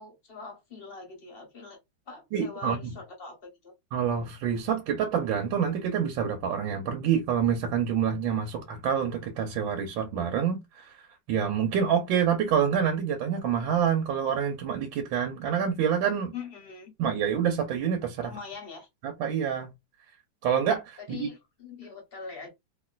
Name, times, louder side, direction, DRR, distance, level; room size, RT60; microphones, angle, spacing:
voice 1, 0.0-1.8 2.1-3.7 16.3-16.9 18.2-18.9 21.0-22.5, left 5 dB, 40° left, 0.9 m, -43 dB
voice 2, 2.3-2.9 3.9-11.0 11.3-16.3 17.0-18.3 19.0-19.7 20.4-21.3, right 8 dB, 75° right, 1.4 m, -27 dB
3.0 x 2.7 x 2.3 m
omnidirectional pair, 2.2 m